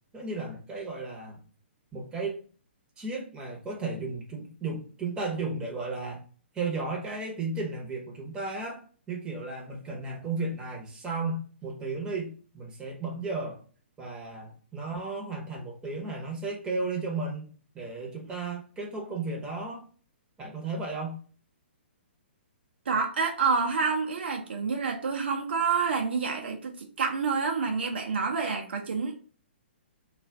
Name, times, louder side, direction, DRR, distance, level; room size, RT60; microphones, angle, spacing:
voice 1, 0.1-1.4 1.9-2.4 3.0-6.2 6.5-8.8 9.1-13.6 14.0-19.8 20.4-21.2, right 3 dB, 15° right, 0.8 m, -34 dB
voice 2, 22.9-29.2, right 5 dB, 65° right, 0.6 m, -28 dB
2.4 x 2.4 x 3.3 m
figure-of-eight pair, 125°, 6 cm